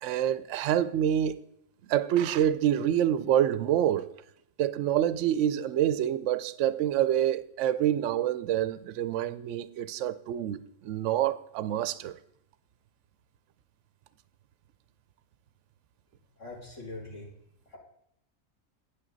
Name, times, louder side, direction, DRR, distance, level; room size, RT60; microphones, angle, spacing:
voice 1, 0.0-1.4 1.9-4.1 4.6-12.2, right 11 dB, 70° right, 0.8 m, -27 dB
voice 2, 16.4-17.3 17.7-17.8, left 2 dB, 60° left, 2.9 m, -42 dB
9.3 x 9.2 x 3.9 m
omnidirectional pair, 1.5 m